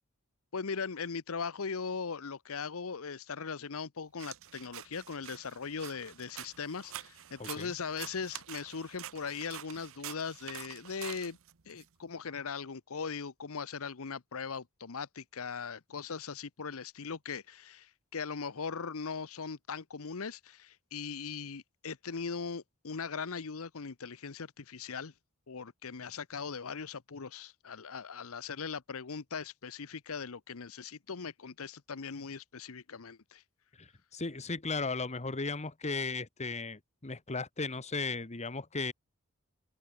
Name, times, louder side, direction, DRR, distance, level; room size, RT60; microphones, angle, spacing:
voice 1, 0.5-11.4 11.7-25.1 25.5-33.4, left 5 dB, 70° left, 0.9 m, -39 dB
sound 1, 4.2-11.9, right 12 dB, 65° right, 0.9 m, -47 dB
voice 2, 7.4-7.7 33.8-38.9, left 3 dB, 30° left, 1.3 m, -36 dB
open air
head